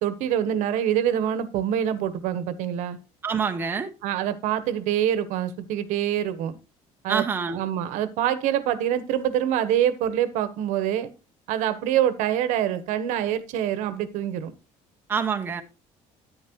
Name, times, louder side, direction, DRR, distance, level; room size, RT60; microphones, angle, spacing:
voice 1, 0.0-3.0 4.0-6.6 7.0-7.2 7.5-11.1 11.5-14.5, right 10 dB, 80° right, 1.1 m, -25 dB
voice 2, 3.2-3.9 7.1-7.6 15.1-15.6, right 6 dB, 15° right, 0.7 m, -26 dB
9.9 x 9.8 x 2.9 m
cardioid pair, 165°, 13 cm